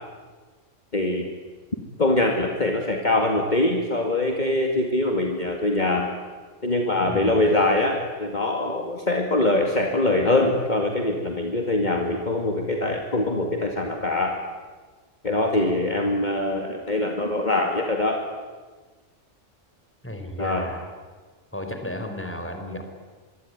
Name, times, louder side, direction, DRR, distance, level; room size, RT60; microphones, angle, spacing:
voice 1, 0.9-1.3 2.0-6.1 6.6-14.4 15.2-18.2 20.4-20.7, left 2 dB, 35° left, 2 dB, 2.5 m, -23 dB
voice 2, 7.1-7.4 20.0-20.9 21.5-22.9, left 1 dB, 10° left, 5 dB, 4.3 m, -33 dB
24.5 x 24.0 x 9.7 m, 1.4 s
omnidirectional pair, 1.3 m